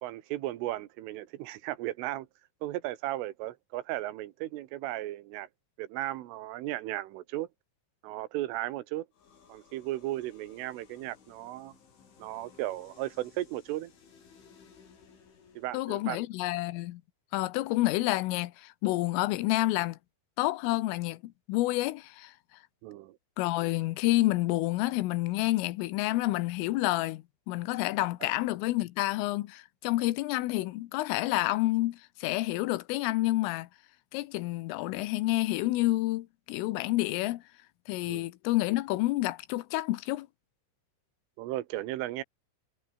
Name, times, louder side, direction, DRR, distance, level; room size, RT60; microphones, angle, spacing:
voice 1, 0.0-2.3 2.6-5.5 5.8-7.5 8.0-9.1 9.5-11.7 12.2-13.9 15.6-16.2 22.8-23.2 28.2-28.3 38.1-38.3 41.4-42.2, right 15 dB, 80° right, 3.8 m, -35 dB
sound 1, 9.1-16.1, left 6 dB, 70° left, 8.1 m, -59 dB
voice 2, 15.7-17.0 17.3-20.0 20.4-22.3 23.4-33.7 34.1-37.4 37.9-40.3, left 18 dB, 85° left, 3.6 m, -29 dB
omnidirectional pair, 5.7 m